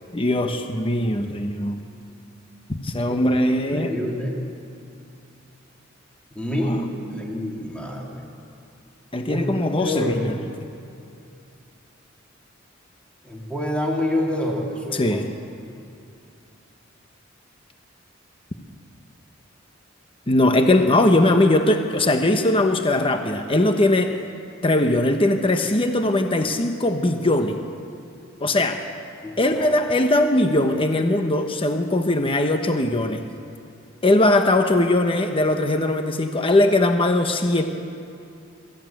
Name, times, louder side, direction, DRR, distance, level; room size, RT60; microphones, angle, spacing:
voice 1, 0.1-1.8 2.7-3.9 6.6-6.8 9.1-10.3 14.9-15.3 20.3-24.1 24.6-27.6 28.4-28.8 29.4-33.3 34.0-37.6, left 1 dB, 25° left, 5 dB, 1.1 m, -20 dB
voice 2, 3.5-4.4 6.3-8.3 9.2-9.5 9.8-10.3 13.2-15.2 29.2-29.7, left 1 dB, 5° left, -2 dB, 3.5 m, -27 dB
23.5 x 14.5 x 9.2 m, 2.6 s
head